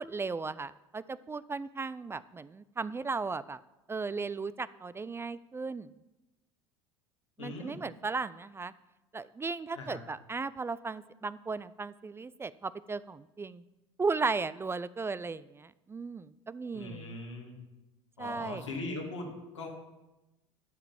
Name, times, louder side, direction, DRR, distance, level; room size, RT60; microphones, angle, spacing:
voice 1, 0.0-3.6 3.9-5.9 7.4-8.7 9.1-13.6 14.0-17.2 18.2-18.6, right 4 dB, 15° right, 17 dB, 0.4 m, -36 dB
voice 2, 7.4-7.8 9.7-10.0 16.7-17.5 18.2-19.7, left 2 dB, 90° left, -1 dB, 2.5 m, -40 dB
12.0 x 5.8 x 7.2 m, 0.99 s
hypercardioid pair, 75°, 15 cm